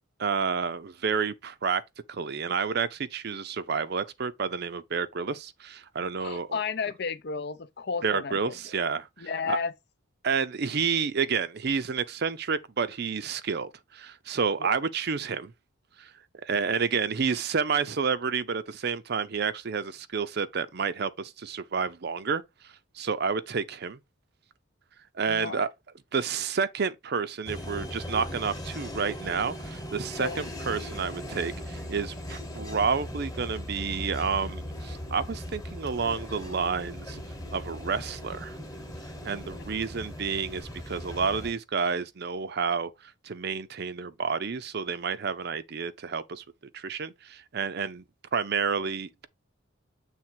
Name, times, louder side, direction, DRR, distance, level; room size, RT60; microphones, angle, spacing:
voice 1, 0.2-1.8 2.1-6.6 8.0-9.1 9.5-9.6 10.2-15.5 16.0-16.1 16.4-24.0 25.2-25.7 26.1-37.2 37.5-38.6 39.2-42.9 43.2-46.4 46.7-48.0 48.3-49.3, right 5 dB, 50° right, 0.5 m, -30 dB
voice 2, 6.2-8.5 9.2-9.7 14.6-14.7 25.3-25.7 30.2-30.4, left 5 dB, 50° left, 0.6 m, -32 dB
sound 1, 27.4-41.5, equal, 15° left, 1.2 m, -38 dB
7.3 x 3.4 x 4.4 m
head